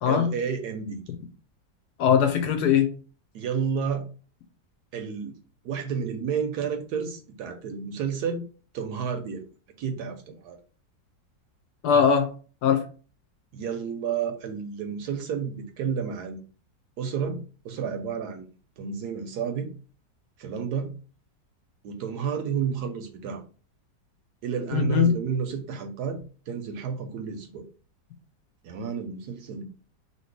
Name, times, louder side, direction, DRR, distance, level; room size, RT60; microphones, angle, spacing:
voice 1, 0.1-1.0 3.3-4.1 4.9-5.3 5.6-8.4 8.7-9.4 9.8-10.6 13.5-16.4 17.0-18.4 18.8-19.7 20.4-20.9 21.8-23.4 24.4-26.2 26.5-27.7 28.6-29.6, right 6 dB, 75° right, 1.0 m, -31 dB
voice 2, 2.0-2.9 11.8-12.3 12.6-12.8 24.7-25.1, left 7 dB, 70° left, 1.0 m, -20 dB
2.9 x 2.9 x 4.5 m
omnidirectional pair, 2.0 m